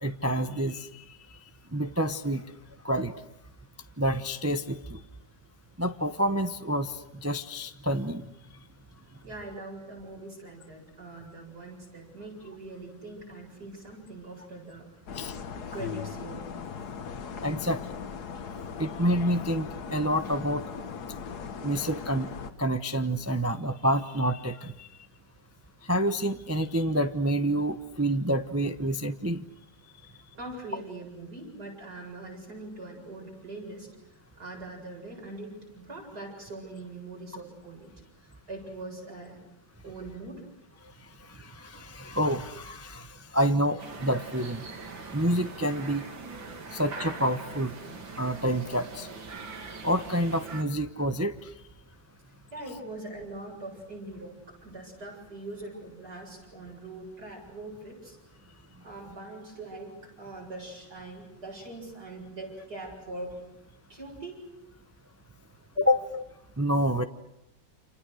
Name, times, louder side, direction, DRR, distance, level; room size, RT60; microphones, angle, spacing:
voice 1, 0.0-1.0 1.7-2.4 2.8-3.1 4.0-5.0 5.8-8.2 15.1-15.4 17.4-17.8 18.8-20.6 21.6-22.3 22.6-24.9 25.9-29.4 41.4-43.1 43.3-44.6 45.1-46.0 46.7-47.7 48.2-49.1 49.8-51.3 65.8-66.2 66.6-67.0, equal, 15° right, 8 dB, 0.5 m, -28 dB
voice 2, 9.2-14.9 15.7-16.5 30.4-33.9 34.4-37.9 38.5-39.4 39.8-40.4 52.5-58.2 58.8-63.4 63.9-64.5 65.7-65.8, right 2 dB, 55° right, 0 dB, 8.2 m, -42 dB
sound 1, 15.1-22.5, left 6 dB, 60° left, 1.7 m, -38 dB
sound 2, 43.8-50.6, right 4 dB, 85° right, 3.3 m, -42 dB
30.0 x 28.0 x 6.4 m, 0.81 s
omnidirectional pair, 2.0 m